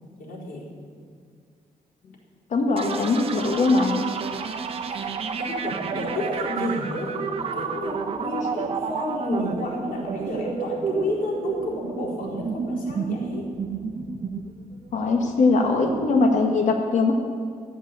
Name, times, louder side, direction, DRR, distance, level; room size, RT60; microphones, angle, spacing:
voice 1, 0.2-0.7 4.8-5.0 5.4-13.5, left 1 dB, 80° left, -5 dB, 4.4 m, -31 dB
voice 2, 2.5-4.1 14.9-17.1, left 3 dB, 60° left, 2 dB, 1.5 m, -21 dB
sound 1, 2.8-16.4, right 6 dB, 45° right, 1.0 m, -31 dB
14.0 x 8.2 x 8.5 m, 2.1 s
wide cardioid pair, 145°, 14 cm